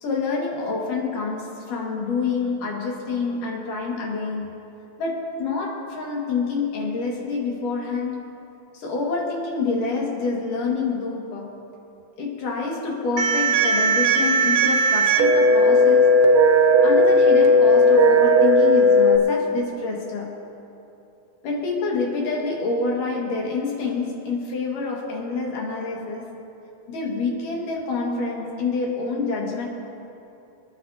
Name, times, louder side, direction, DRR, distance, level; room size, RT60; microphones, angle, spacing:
voice 1, 0.0-4.5 5.0-8.2 8.7-11.5 12.2-16.1 16.8-20.4 21.4-26.2 26.9-29.7, left 4 dB, 80° left, -3 dB, 3.7 m, -27 dB
sound 1, 13.2-19.2, equal, 70° right, 1.4 m, -16 dB
29.0 x 9.8 x 2.9 m, 2.8 s
omnidirectional pair, 3.7 m